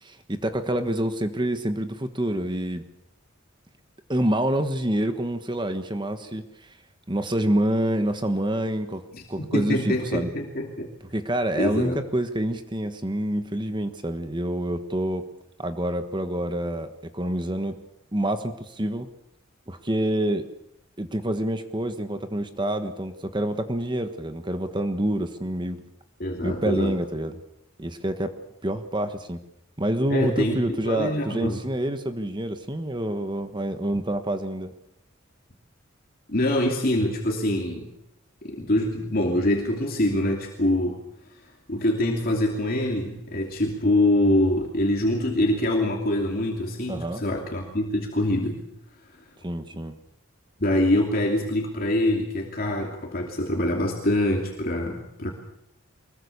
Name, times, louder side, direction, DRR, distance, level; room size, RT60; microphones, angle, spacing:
voice 1, 0.0-2.8 4.1-6.4 7.1-9.0 9.3-10.3 11.1-15.2 15.6-17.8 18.1-19.1 19.7-20.5 21.0-25.8 26.4-27.4 27.8-29.4 29.8-34.7 46.9-47.2 49.4-50.0, right 1 dB, 25° right, 8 dB, 1.4 m, -27 dB
voice 2, 9.1-10.9 11.5-12.0 26.2-27.0 30.1-31.6 36.3-37.9 38.4-41.0 41.7-48.6 50.6-55.3, left 1 dB, 45° left, 1 dB, 2.9 m, -24 dB
24.0 x 21.5 x 7.0 m, 0.81 s
head